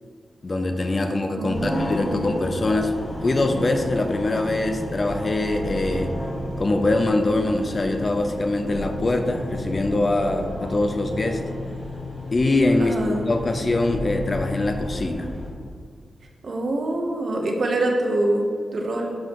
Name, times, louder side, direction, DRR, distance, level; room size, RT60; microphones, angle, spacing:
voice 1, 0.4-2.9 3.2-6.1 6.6-11.4 12.3-15.3, left 2 dB, 35° left, 6 dB, 0.5 m, -23 dB
voice 2, 1.4-2.4 12.8-13.3 16.4-19.2, right 1 dB, 55° right, 1 dB, 1.0 m, -25 dB
sound 1, 1.5-15.5, left 1 dB, 55° left, 1.6 m, -32 dB
11.5 x 4.9 x 3.0 m, 2.1 s
wide cardioid pair, 105°, 0 cm